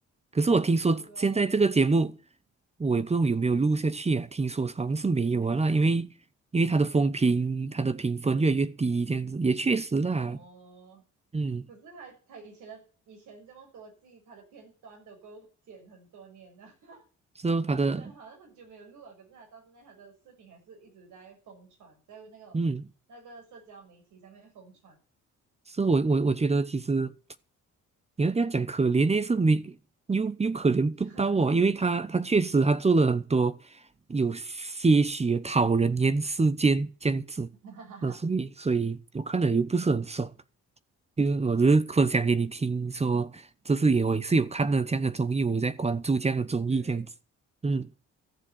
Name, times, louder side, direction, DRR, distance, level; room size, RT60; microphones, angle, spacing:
voice 1, 0.3-2.1 2.8-6.1 6.5-10.4 11.3-11.6 17.4-18.0 22.5-22.8 25.8-27.1 28.2-29.8 30.1-33.6 34.1-37.5 38.0-40.3 41.2-47.1 47.6-47.9, right 3 dB, 20° right, 0.9 m, -25 dB
voice 2, 1.0-1.4 5.4-5.9 10.1-11.0 11.7-17.0 18.0-22.6 23.1-25.0 31.0-31.5 37.6-38.2 46.7-47.0, right 5 dB, 80° right, 6.5 m, -50 dB
14.0 x 7.4 x 8.6 m
cardioid pair, 90°, 30 cm